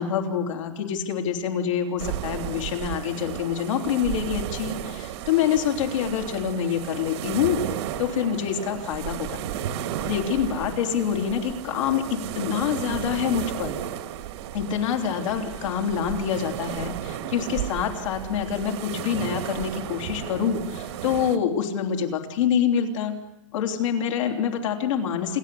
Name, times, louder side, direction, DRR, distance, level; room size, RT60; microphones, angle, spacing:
voice 1, 0.0-7.6 8.0-9.4 10.1-13.8 14.5-23.2 23.5-25.4, left 8 dB, 75° left, 3 dB, 3.4 m, -26 dB
sound 1, 2.0-21.4, right 11 dB, 60° right, 1.7 m, -34 dB
27.5 x 12.0 x 8.5 m, 0.96 s
supercardioid pair, 165°, 16 cm